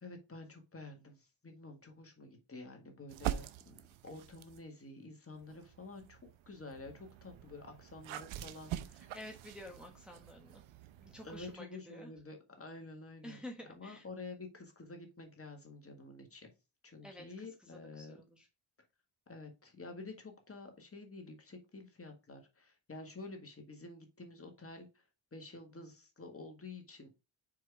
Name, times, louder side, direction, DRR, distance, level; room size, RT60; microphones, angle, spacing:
voice 1, 0.0-6.2 6.5-9.2 11.2-13.4 13.8-16.5 16.8-18.2 19.3-25.0 25.3-27.1, left 3 dB, 30° left, 4 dB, 1.8 m, -49 dB
sound 1, 3.1-4.7 5.3-11.6, right 12 dB, 75° right, 0.7 m, -44 dB
voice 2, 8.9-10.6 11.0-12.1 13.2-14.0 17.0-18.5, left 1 dB, ahead, 1 dB, 1.2 m, -50 dB
5.0 x 4.4 x 4.7 m, 0.29 s
cardioid pair, 80°, 49 cm